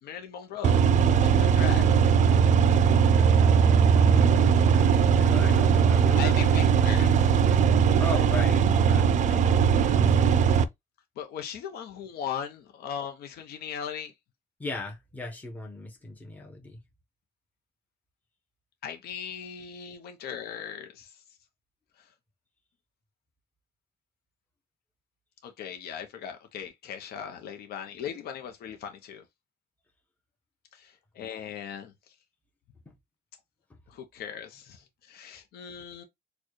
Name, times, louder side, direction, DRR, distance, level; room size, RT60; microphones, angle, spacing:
voice 1, 0.0-0.9 1.2-2.0 6.2-7.3 11.2-14.1 18.8-21.2 22.0-22.1 25.4-29.2 30.7-32.1 33.9-36.0, left 8 dB, 70° left, 0.8 m, -38 dB
sound 1, 0.6-10.6, right 7 dB, 45° right, 0.4 m, -20 dB
voice 2, 3.9-6.4 8.0-10.2 14.6-16.8 32.9-33.0, left 2 dB, 10° left, 1.0 m, -38 dB
4.3 x 2.4 x 3.0 m
cardioid pair, 110°, 17 cm